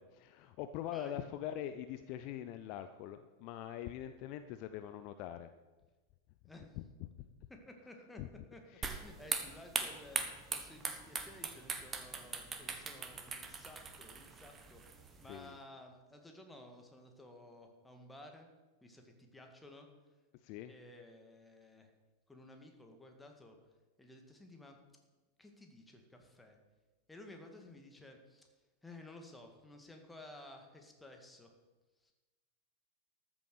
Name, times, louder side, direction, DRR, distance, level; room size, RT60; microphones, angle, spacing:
voice 1, 0.0-5.5 6.8-6.9 8.2-8.3 15.3-15.6 20.4-20.7, left 11 dB, 45° left, 10 dB, 0.6 m, -43 dB
voice 2, 7.5-8.2 8.5-8.6 8.9-10.2 10.5-18.5 18.8-19.9 20.6-21.9 22.3-23.6 24.0-24.8 25.4-26.6 27.1-28.5 28.8-31.5 32.0-32.1, left 1 dB, 5° left, 3 dB, 2.0 m, -55 dB
sound 1, 8.8-15.4, right 5 dB, 20° right, 1.4 m, -41 dB
13.5 x 7.1 x 6.8 m, 1.2 s
figure-of-eight pair, 90°, 0 cm